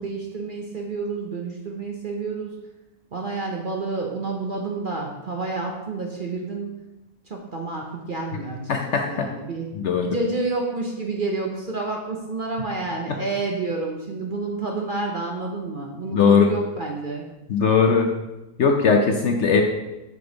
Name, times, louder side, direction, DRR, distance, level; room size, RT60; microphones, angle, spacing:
voice 1, 0.0-2.6 3.1-6.8 7.2-9.7 10.0-17.2, right 3 dB, 45° right, 0 dB, 0.8 m, -29 dB
voice 2, 8.7-9.3 9.8-10.1 13.1-13.2 16.1-16.5 17.5-18.1 18.6-19.6, left 5 dB, 60° left, 4 dB, 0.8 m, -19 dB
7.8 x 5.3 x 3.9 m, 1.0 s
omnidirectional pair, 1.6 m